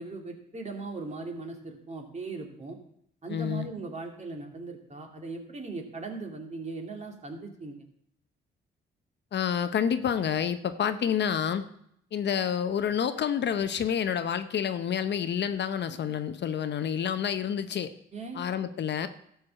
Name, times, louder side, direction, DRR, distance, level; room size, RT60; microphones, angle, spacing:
voice 1, 0.0-2.8 3.2-7.8 18.1-18.4, right 3 dB, 30° right, 3 dB, 2.4 m, -39 dB
voice 2, 3.3-3.7 9.3-11.6 12.1-17.9 18.3-19.1, left 8 dB, 55° left, 11 dB, 0.8 m, -28 dB
13.0 x 4.8 x 7.5 m, 0.71 s
cardioid pair, 75°, 21 cm